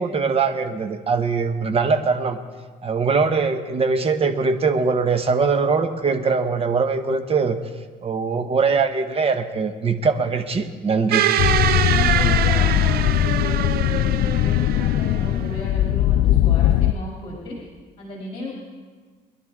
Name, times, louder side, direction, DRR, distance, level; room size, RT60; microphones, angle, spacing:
voice 1, 0.0-2.4 2.8-7.6 8.0-11.2, right 4 dB, 35° right, 8 dB, 1.2 m, -21 dB
sound 1, 11.1-15.5, right 11 dB, 65° right, 0.6 m, -24 dB
sound 2, 11.4-16.9, left 13 dB, 65° left, 0.4 m, -19 dB
voice 2, 11.9-17.6 18.0-18.6, equal, 35° left, -4 dB, 3.2 m, -34 dB
23.0 x 11.0 x 3.7 m, 1.5 s
cardioid pair, 110°, 17 cm